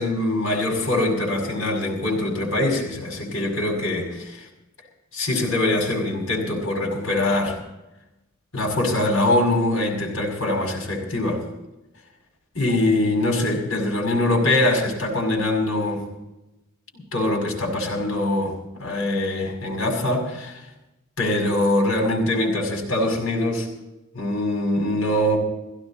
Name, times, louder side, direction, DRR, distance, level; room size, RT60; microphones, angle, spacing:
voice 1, 0.0-4.5 5.1-7.6 8.5-11.4 12.5-16.0 16.9-20.6 21.2-23.7 24.1-25.4, left 1 dB, 70° left, 0 dB, 6.1 m, -23 dB
17.0 x 16.5 x 4.3 m, 0.95 s
head